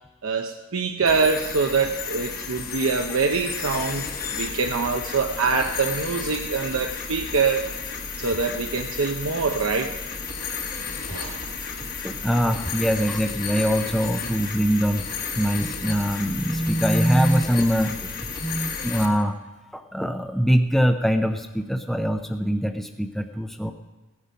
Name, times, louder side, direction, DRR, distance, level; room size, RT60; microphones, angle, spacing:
voice 1, 0.2-4.0 4.3-7.7 8.2-10.0 11.1-11.5, right 4 dB, 90° right, 3 dB, 0.8 m, -24 dB
sound 1, 1.1-19.1, left 5 dB, 45° left, 1.4 m, -33 dB
voice 2, 12.0-15.1 15.4-18.1 18.4-19.4 19.7-23.7, equal, ahead, 6 dB, 0.5 m, -23 dB
17.0 x 9.8 x 5.2 m, 1.2 s
head